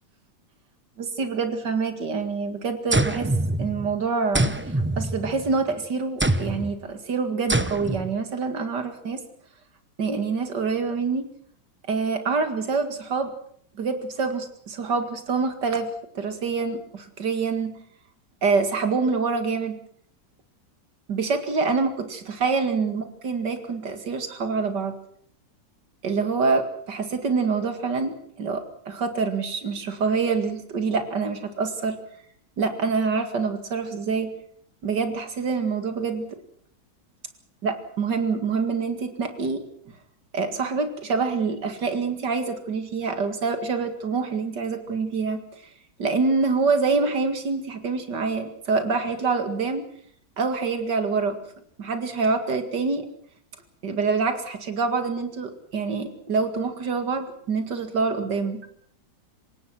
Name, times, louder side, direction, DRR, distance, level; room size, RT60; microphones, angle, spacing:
voice 1, 1.0-3.3 3.6-9.2 10.0-11.3 11.9-13.3 13.8-15.9 16.1-17.8 18.4-19.8 21.1-24.9 26.0-32.0 32.6-34.3 34.8-36.4 37.6-39.6 40.3-45.4 46.0-49.8 50.4-51.4 51.8-53.1 53.8-58.7, right 4 dB, 70° right, 8 dB, 2.7 m, -26 dB
sound 1, 2.9-4.0 4.3-5.6 6.2-6.7 7.5-8.1, right 1 dB, 10° right, 0.5 m, -25 dB
27.5 x 17.0 x 6.1 m, 0.62 s
omnidirectional pair, 1.9 m